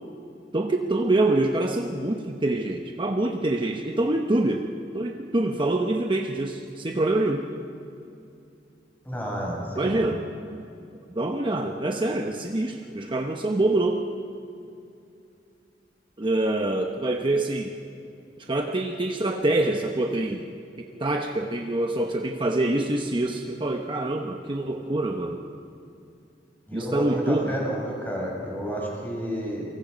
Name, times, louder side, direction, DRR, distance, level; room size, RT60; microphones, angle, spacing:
voice 1, 0.5-4.7 4.9-7.4 9.8-10.7 11.1-14.0 16.2-17.8 18.4-20.5 20.8-25.4 26.7-27.6, right 2 dB, 25° right, 3 dB, 1.0 m, -25 dB
voice 2, 9.0-10.1 26.7-29.7, equal, 10° left, -2 dB, 6.1 m, -31 dB
28.0 x 24.0 x 5.3 m, 2.6 s
head